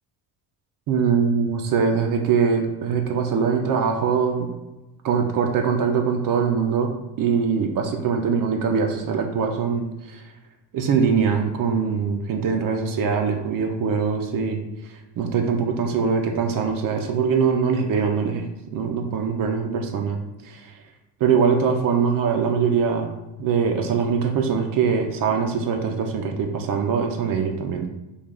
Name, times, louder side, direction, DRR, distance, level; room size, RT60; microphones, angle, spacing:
voice 1, 0.9-4.5 5.0-6.9 7.2-10.2 10.7-14.6 14.9-20.8 21.2-23.1 23.4-27.9, right 6 dB, 60° right, 3 dB, 0.5 m, -22 dB
3.3 x 2.3 x 3.7 m, 1.0 s
cardioid pair, 145°, 39 cm